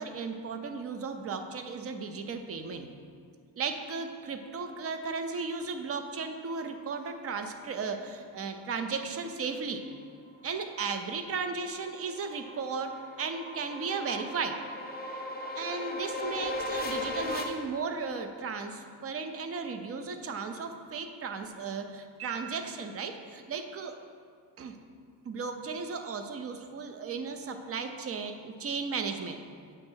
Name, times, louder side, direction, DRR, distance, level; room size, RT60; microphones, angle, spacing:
voice 1, 0.0-2.9 3.6-9.9 10.4-12.9 13.2-14.6 15.6-24.0 24.6-24.8 25.2-29.4, right 5 dB, 35° right, 7 dB, 0.4 m, -35 dB
sound 1, 10.9-17.4, left 2 dB, 20° left, 0.6 m, -37 dB
7.6 x 3.2 x 6.2 m, 2.1 s
cardioid pair, 150°, 45 cm